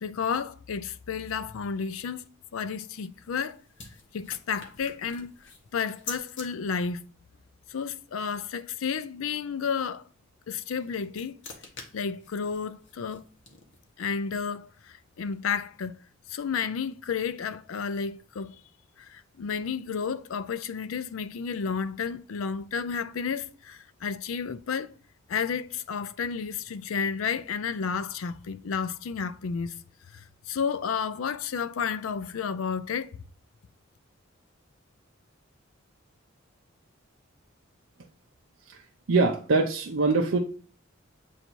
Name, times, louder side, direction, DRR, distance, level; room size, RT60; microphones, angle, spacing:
voice 1, 0.0-2.2 2.5-3.6 4.1-5.3 5.7-7.0 7.7-10.0 10.5-11.4 11.9-13.2 14.0-15.9 16.3-18.6 19.0-24.9 25.3-29.8 30.1-33.1, left 6 dB, 80° left, 0.4 m, -31 dB
sound 1, 2.9-6.5 10.6-14.0, left 4 dB, 60° left, 1.3 m, -46 dB
voice 2, 39.1-40.4, right 3 dB, 70° right, 0.6 m, -23 dB
7.8 x 2.7 x 4.5 m
head